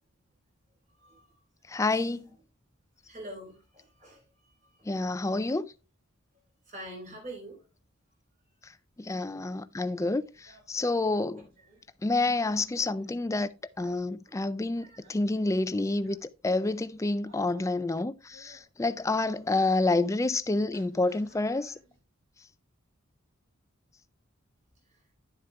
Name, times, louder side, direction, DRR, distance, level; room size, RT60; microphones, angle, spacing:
voice 1, 1.7-2.2 4.9-5.7 9.0-11.5 12.0-13.5 13.8-21.8, left 2 dB, 15° left, 0.3 m, -28 dB
voice 2, 3.1-4.2 6.7-7.6 13.8-13.9 14.3-14.4 14.8-15.1, right 1 dB, 35° right, 4.0 m, -44 dB
sound 1, 10.3-11.8 12.4-13.3 13.7-14.1 14.5-15.6 16.0-16.2 16.6-16.9 17.2-17.9 18.3-18.6 19.0-19.4 19.8-20.4 20.7-22.0, right 1 dB, 80° right, 3.4 m, -59 dB
11.0 x 7.6 x 2.4 m
head